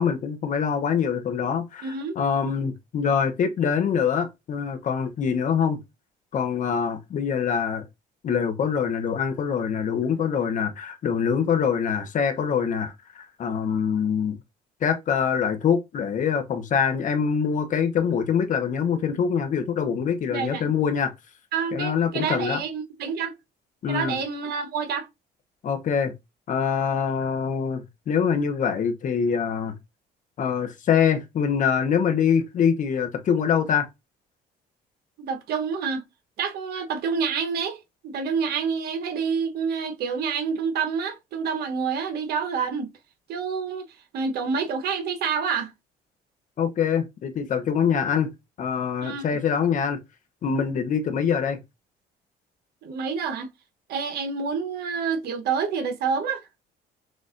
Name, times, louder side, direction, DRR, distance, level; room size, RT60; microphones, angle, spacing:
voice 1, 0.0-5.8 6.3-7.8 8.2-14.4 14.8-21.1 21.7-22.6 23.8-24.2 25.6-26.1 26.5-29.7 30.4-33.9 46.6-48.3 48.6-50.0 50.4-51.6, left 7 dB, 50° left, 0.8 m, -24 dB
voice 2, 1.8-2.2 20.3-20.6 21.5-23.3 23.9-25.1 35.2-36.0 36.4-42.9 43.3-43.9 44.1-45.7 49.0-49.4 52.8-53.5 53.9-56.5, right 6 dB, 70° right, 1.1 m, -28 dB
6.3 x 2.5 x 2.5 m
cardioid pair, 110°, 17 cm